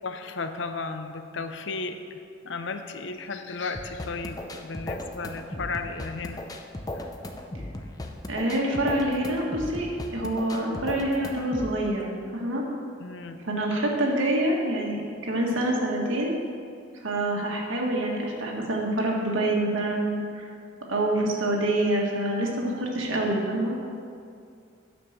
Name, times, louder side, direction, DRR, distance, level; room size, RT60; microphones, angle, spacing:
voice 1, 0.0-2.2 2.4-6.4 13.0-13.4, left 4 dB, 60° left, 8 dB, 0.6 m, -34 dB
sound 1, 3.7-11.7, left 1 dB, 20° left, 0.5 m, -36 dB
voice 2, 8.3-9.9 10.1-12.6 13.4-16.3 17.0-20.5 20.9-23.8, right 1 dB, 75° right, -1 dB, 1.6 m, -26 dB
9.4 x 5.5 x 7.2 m, 2.4 s
head